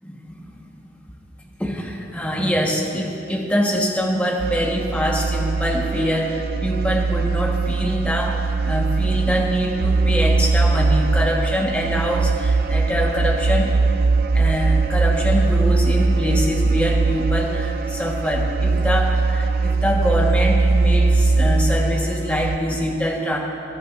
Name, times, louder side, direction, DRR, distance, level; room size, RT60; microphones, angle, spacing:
voice 1, 1.6-13.8 14.3-23.4, equal, 5° left, -2 dB, 1.2 m, -24 dB
sound 1, 4.4-22.6, right 3 dB, 50° right, 0.4 m, -20 dB
20.0 x 12.0 x 2.5 m, 2.9 s
head